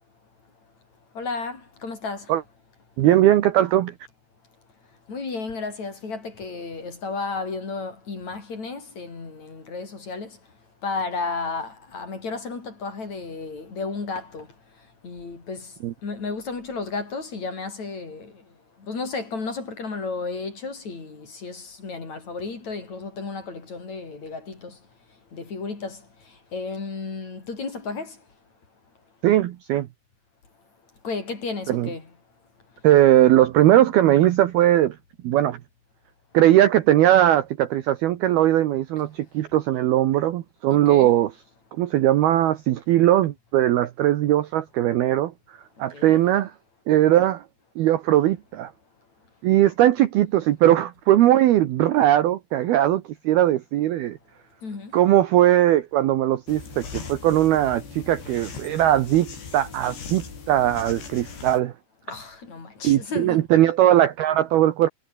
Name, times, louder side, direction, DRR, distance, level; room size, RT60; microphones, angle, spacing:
voice 1, 1.2-2.3 5.1-10.4 10.8-14.5 15.0-15.7 16.0-18.3 18.9-24.8 25.3-26.0 26.5-28.2 31.0-32.1 40.7-41.1 45.9-46.2 54.6-54.9 62.1-63.4, left 4 dB, 35° left, 5.8 m, -33 dB
voice 2, 3.0-3.9 15.8-15.9 29.2-29.9 31.7-31.9 32.8-35.0 35.2-35.6 36.3-41.3 41.8-45.3 45.8-46.5 46.9-47.4 47.8-48.7 49.4-54.2 54.9-61.7 62.8-64.9, right 13 dB, 70° right, 2.5 m, -19 dB
sound 1, 56.5-61.6, left 5 dB, 60° left, 8.1 m, -39 dB
omnidirectional pair, 5.7 m